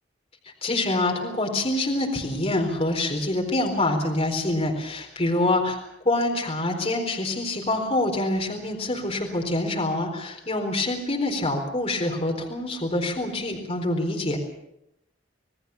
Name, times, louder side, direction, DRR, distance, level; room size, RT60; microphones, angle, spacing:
voice 1, 0.6-5.8 6.0-14.4, left 2 dB, 35° left, 1 dB, 4.1 m, -26 dB
27.5 x 18.5 x 7.0 m, 0.82 s
head